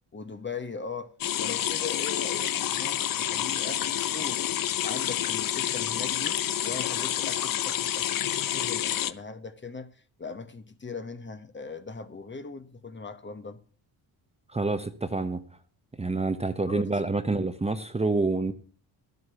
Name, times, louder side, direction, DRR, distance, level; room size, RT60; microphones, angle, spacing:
voice 1, 0.1-1.1 1.4-4.5 4.8-13.6 16.7-16.8, left 4 dB, 25° left, 1.2 m, -39 dB
sound 1, 1.2-9.1, left 11 dB, 50° left, 0.7 m, -28 dB
voice 2, 14.5-15.4 16.0-18.5, right 3 dB, 15° right, 0.9 m, -27 dB
12.0 x 8.1 x 6.8 m
cardioid pair, 85°, 43 cm